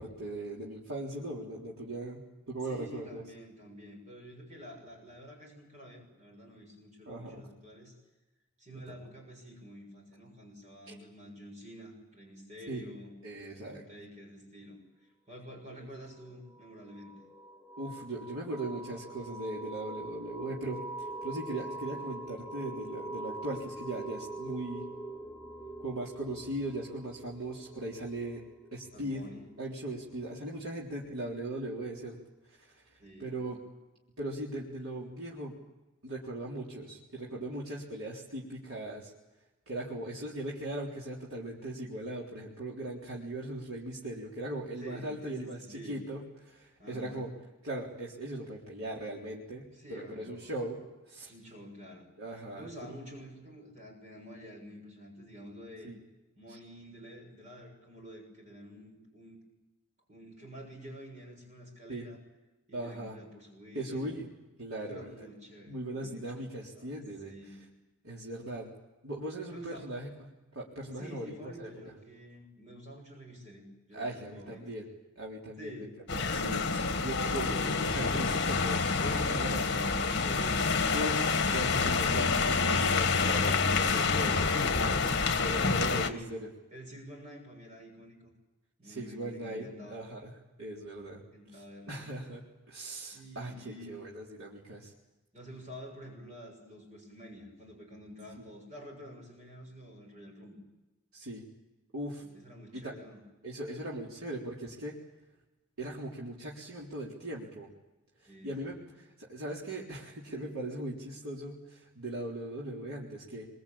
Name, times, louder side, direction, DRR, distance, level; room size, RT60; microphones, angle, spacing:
voice 1, 0.0-3.2 7.1-7.5 8.7-9.0 10.9-11.0 12.7-12.8 13.2-13.8 15.8-15.9 17.8-24.8 25.8-28.4 28.7-29.2 29.6-32.2 32.5-33.6 34.2-35.5 36.0-39.1 39.7-47.3 47.6-50.8 51.1-51.3 52.2-52.9 55.8-56.0 56.5-56.6 61.9-62.0 62.7-63.2 63.7-64.3 64.6-65.3 65.7-67.3 68.0-68.7 69.0-70.3 70.5-71.7 73.9-74.8 75.2-75.9 76.1-79.9 80.9-83.6 83.9-84.5 84.8-85.1 85.4-86.4 88.8-90.3 90.6-91.2 91.5-91.6 91.9-94.9 98.4-98.5 101.1-101.4 101.9-102.2 102.7-102.9 103.4-105.0 105.8-107.7 108.4-113.5, right 1 dB, 80° right, -4 dB, 3.9 m, -39 dB
voice 2, 2.6-8.0 8.6-13.2 13.5-17.2 28.9-29.5 33.0-33.3 44.8-46.0 46.8-47.3 49.7-50.5 51.2-52.1 52.5-55.9 56.4-59.4 60.1-62.2 62.7-64.0 64.8-66.9 67.2-67.7 69.5-69.9 70.9-74.8 75.6-75.9 80.2-81.2 85.3-86.4 86.7-88.3 88.8-90.0 91.3-92.0 93.1-94.0 95.3-100.6 102.2-103.2 108.3-108.8, equal, 35° right, 2 dB, 6.9 m, -49 dB
sound 1, 16.5-31.0, right 2 dB, ahead, 0.8 m, -44 dB
sound 2, 76.1-86.1, left 4 dB, 50° left, 1.8 m, -28 dB
25.5 x 24.0 x 8.8 m, 1.1 s
head